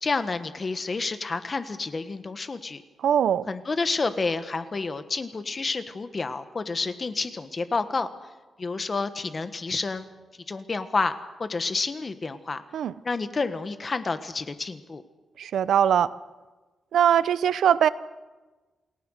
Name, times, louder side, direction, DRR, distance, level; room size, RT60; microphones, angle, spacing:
voice 1, 0.0-2.8 3.5-8.1 8.6-10.1 10.5-12.6 13.0-15.0, left 3 dB, 30° left, 10 dB, 1.5 m, -29 dB
voice 2, 3.0-3.5 12.7-12.9 15.4-16.1 16.9-17.9, right 9 dB, 90° right, 16 dB, 0.7 m, -21 dB
28.5 x 18.5 x 6.6 m, 1.2 s
wide cardioid pair, 135°, 0 cm